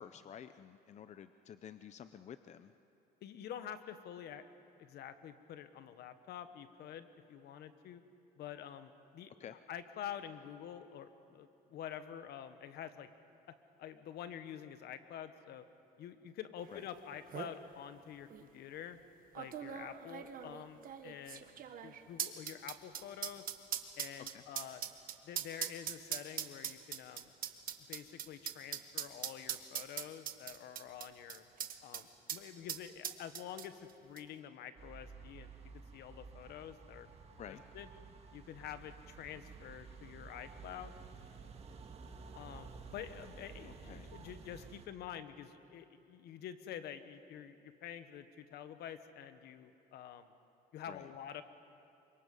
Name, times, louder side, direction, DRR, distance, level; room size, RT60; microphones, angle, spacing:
voice 1, 0.0-2.7 9.4-9.6 16.7-16.8 24.3-24.4 37.4-37.6 43.7-44.1 50.9-51.1, left 8 dB, 45° left, 11 dB, 0.7 m, -51 dB
voice 2, 3.2-4.4 4.8-8.0 8.4-13.1 13.8-15.6 16.0-19.0 19.3-21.5 21.8-23.4 24.0-24.8 25.2-27.3 27.8-31.4 31.8-33.7 34.0-35.5 35.9-37.1 37.4-37.9 38.3-40.9 42.3-50.3 50.7-51.4, left 9 dB, 75° left, 10 dB, 1.4 m, -48 dB
sound 1, 16.8-16.9 17.1-17.5 18.3-18.4 19.4-32.0 32.3-32.4 32.7-33.9 34.2-34.3, right 9 dB, 55° right, 1.5 m, -41 dB
sound 2, 34.8-44.9, right 5 dB, 35° right, 2.0 m, -53 dB
27.5 x 25.0 x 5.5 m, 2.8 s
cardioid pair, 110°, 17 cm